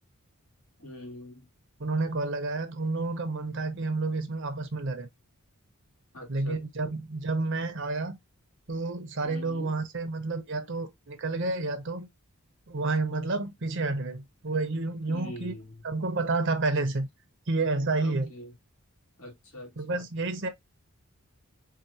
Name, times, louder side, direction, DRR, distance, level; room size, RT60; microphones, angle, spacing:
voice 1, 0.8-1.5 6.1-7.0 9.2-9.8 15.1-15.8 18.0-18.5 19.2-20.1, left 1 dB, 70° left, 2.1 m, -44 dB
voice 2, 1.8-5.1 6.3-8.2 8.7-12.1 12.7-15.5 15.8-17.1 17.5-18.3 19.8-20.5, right 3 dB, 55° right, 0.7 m, -30 dB
4.7 x 2.3 x 2.7 m
head